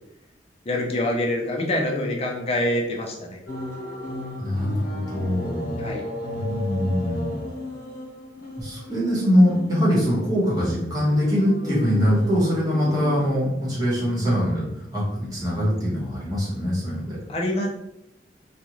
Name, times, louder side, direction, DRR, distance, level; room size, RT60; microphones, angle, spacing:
voice 1, 0.7-3.4 5.8-6.0 17.3-17.7, left 1 dB, 35° left, 0 dB, 0.5 m, -25 dB
sound 1, 3.5-13.3, left 1 dB, 60° left, 0.9 m, -35 dB
voice 2, 4.4-5.7 6.3-7.4 8.6-17.2, equal, 20° right, -7 dB, 1.2 m, -23 dB
2.4 x 2.3 x 2.9 m, 0.85 s
head